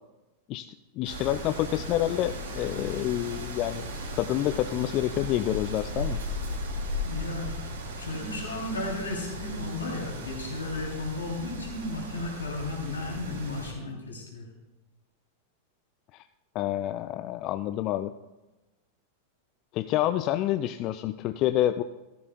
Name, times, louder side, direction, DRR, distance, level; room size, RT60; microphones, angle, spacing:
voice 1, 1.0-3.9 4.1-6.2 16.1-16.2 16.5-18.1 19.7-21.8, left 13 dB, 40° left, 11 dB, 0.4 m, -28 dB
sound 1, 1.0-13.7, left 1 dB, 65° right, 2.9 m, -36 dB
voice 2, 7.0-7.6 8.0-14.5, left 2 dB, 75° left, -1 dB, 3.2 m, -34 dB
15.5 x 13.5 x 2.3 m, 1.1 s
figure-of-eight pair, 90°, 0 cm